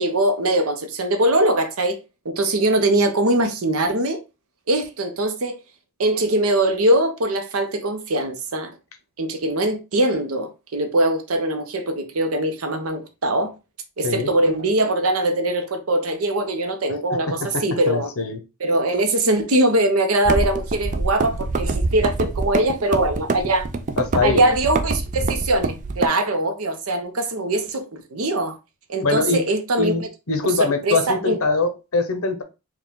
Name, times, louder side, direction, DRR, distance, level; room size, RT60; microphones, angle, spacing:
voice 1, 0.0-2.0 2.2-4.2 4.7-5.6 6.0-8.7 9.2-13.5 14.0-18.1 18.6-23.7 24.2-28.6 28.9-30.1 30.6-31.4, right 1 dB, 70° right, 0.8 m, -22 dB
voice 2, 17.5-18.4 24.0-24.5 29.0-29.4 29.8-30.0 30.3-32.4, left 3 dB, 70° left, 0.9 m, -22 dB
sound 1, 20.3-26.1, right 3 dB, 35° right, 0.4 m, -25 dB
4.6 x 2.4 x 3.6 m
head